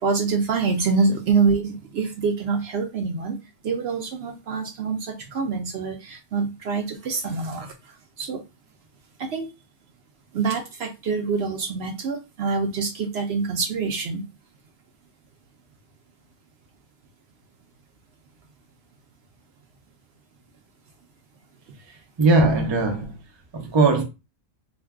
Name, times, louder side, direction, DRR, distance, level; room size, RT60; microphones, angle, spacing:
voice 1, 0.0-8.4 9.2-9.5 10.3-14.2, right 4 dB, 65° right, 0.7 m, -26 dB
voice 2, 22.2-23.2 23.5-24.0, right 3 dB, 40° right, 0.3 m, -19 dB
2.5 x 2.2 x 3.4 m
omnidirectional pair, 1.4 m